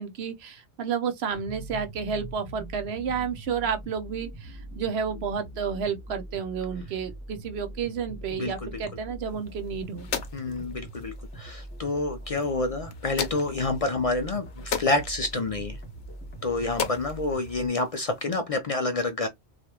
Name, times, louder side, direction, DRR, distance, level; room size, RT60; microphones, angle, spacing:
voice 1, 0.0-10.1, right 6 dB, 70° right, 0.9 m, -31 dB
sound 1, 1.3-17.7, right 1 dB, 10° left, 0.8 m, -42 dB
voice 2, 8.4-8.8 10.3-15.8 16.4-19.3, left 2 dB, 55° left, 0.4 m, -28 dB
sound 2, 9.3-18.3, left 7 dB, 85° left, 1.0 m, -38 dB
3.2 x 2.4 x 2.8 m
omnidirectional pair, 1.2 m